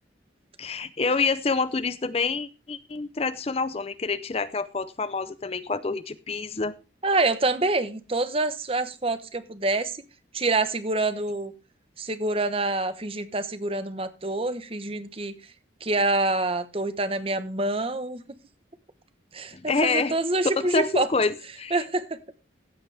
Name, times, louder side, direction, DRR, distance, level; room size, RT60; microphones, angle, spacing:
voice 1, 0.6-6.7 19.5-20.1 20.7-21.8, left 4 dB, 30° left, 0.5 m, -27 dB
voice 2, 7.0-10.0 10.3-11.5 12.0-15.3 15.8-18.2 19.3-21.1 21.7-22.2, right 2 dB, 30° right, 1.0 m, -26 dB
15.5 x 8.3 x 3.4 m
head